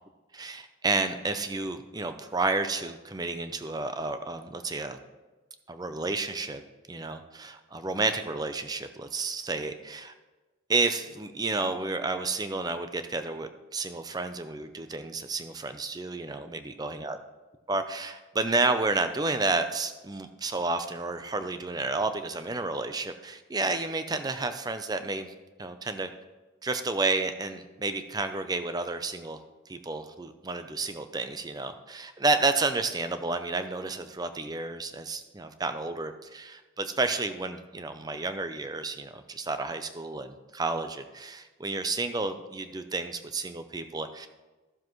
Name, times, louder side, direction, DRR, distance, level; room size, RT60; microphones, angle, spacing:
voice 1, 0.4-5.0 5.7-6.6 6.9-10.1 10.7-17.2 17.7-25.3 25.6-26.1 26.6-29.4 29.7-44.3, right 3 dB, 20° right, 9 dB, 0.5 m, -31 dB
13.5 x 7.3 x 3.1 m, 1.2 s
head